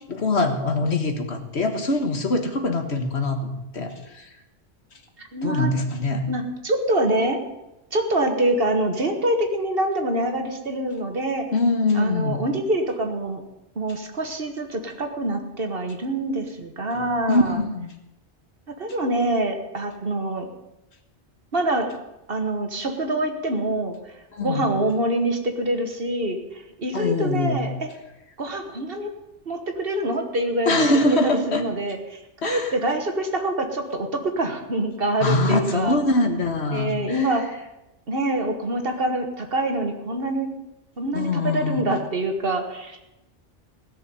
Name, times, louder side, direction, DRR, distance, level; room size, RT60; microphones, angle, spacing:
voice 1, 0.1-4.3 5.4-6.3 11.5-12.4 17.3-17.9 24.3-24.7 26.9-27.6 30.7-31.6 32.4-32.7 35.2-37.3 41.1-41.8, left 2 dB, 70° left, 6 dB, 1.8 m, -23 dB
voice 2, 5.3-5.7 6.3-7.4 7.9-11.5 11.9-13.4 13.8-17.6 18.7-20.5 21.5-21.9 22.3-24.0 24.4-27.9 28.4-29.1 29.5-36.0 36.7-37.6 38.1-40.5 41.0-43.0, right 1 dB, 55° right, 5 dB, 1.8 m, -25 dB
16.5 x 6.7 x 9.4 m, 0.95 s
omnidirectional pair, 1.2 m